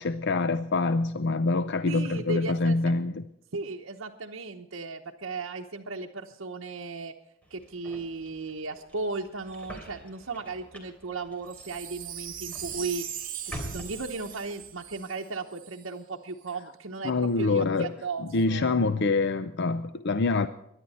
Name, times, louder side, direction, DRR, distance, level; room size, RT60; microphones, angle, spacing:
voice 1, 0.0-3.2 17.0-17.9 18.2-20.5, left 3 dB, 60° left, 12 dB, 0.6 m, -25 dB
voice 2, 1.9-2.8 3.5-7.1 7.5-13.0 13.4-18.7, right 3 dB, 80° right, -1 dB, 1.0 m, -36 dB
sound 1, 7.4-14.9, equal, 5° left, 3.1 m, -46 dB
Wind chime, 11.5-15.8 16.4-16.5, right 10 dB, 45° right, 2.2 m, -40 dB
22.5 x 11.0 x 4.2 m, 0.78 s
head